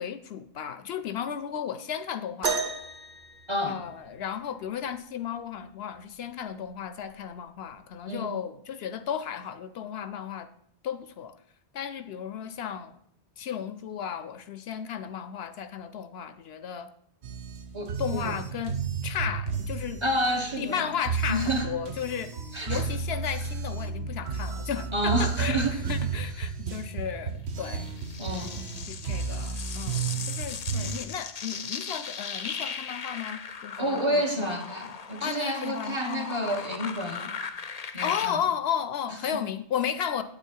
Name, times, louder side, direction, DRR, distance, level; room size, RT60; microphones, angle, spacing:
voice 1, 0.0-2.6 3.6-10.5 10.8-11.3 11.7-12.9 13.4-16.9 18.0-18.8 19.0-20.0 20.6-22.3 22.7-27.9 28.3-28.5 28.8-34.3 35.2-36.3 38.0-40.2, left 8 dB, 75° left, 12 dB, 0.8 m, -34 dB
sound 1, 2.4-4.3 6.0-6.1 6.9-7.1 8.0-8.1, right 5 dB, 55° right, 1.1 m, -33 dB
voice 2, 3.5-3.8 8.1-8.4 17.7-18.3 20.0-20.7 21.3-21.7 22.5-22.8 24.9-25.8 28.2-28.6 33.8-37.3 37.9-38.4, equal, 25° right, 2 dB, 1.3 m, -29 dB
sound 2, 17.2-31.0, right 5 dB, 85° right, 1.1 m, -33 dB
sound 3, 27.6-38.3, left 6 dB, 45° left, 0.6 m, -38 dB
8.8 x 8.4 x 4.6 m, 0.69 s
omnidirectional pair, 1.1 m